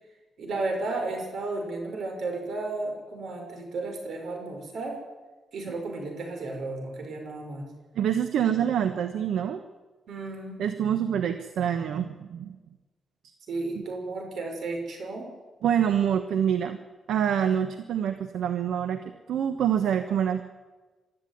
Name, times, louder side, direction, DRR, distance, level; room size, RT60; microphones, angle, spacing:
voice 1, 0.4-5.0 5.5-7.7 10.1-10.6 13.5-15.3, right 2 dB, 70° right, 4 dB, 6.0 m, -33 dB
voice 2, 7.9-9.6 10.6-12.6 13.7-13.8 15.6-16.8 17.1-19.0 19.3-20.4, right 9 dB, 85° right, 9 dB, 1.2 m, -26 dB
24.5 x 13.0 x 9.4 m, 1.3 s
cardioid pair, 120°, 0 cm